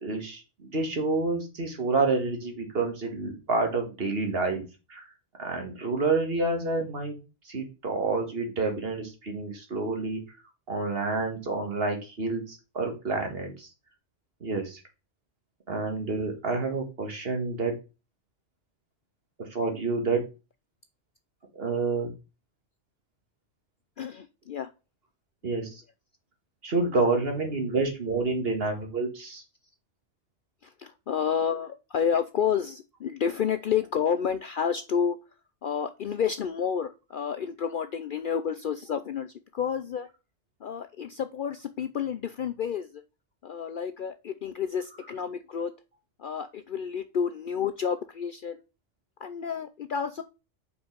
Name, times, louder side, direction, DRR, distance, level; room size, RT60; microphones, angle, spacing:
voice 1, 0.0-4.6 4.9-5.1 5.4-7.2 7.5-10.2 10.7-13.7 14.4-14.8 15.7-17.7 19.4-20.2 21.5-22.1 25.4-25.8 26.6-29.4, right 3 dB, 55° right, 3 dB, 1.8 m, -28 dB
voice 2, 24.0-24.7 27.1-27.5 30.6-35.2 35.6-40.1 40.6-43.0 43.4-45.7 46.2-48.6 49.2-50.2, left 7 dB, 60° left, 10 dB, 0.6 m, -30 dB
5.3 x 4.6 x 5.2 m, 0.30 s
omnidirectional pair, 1.3 m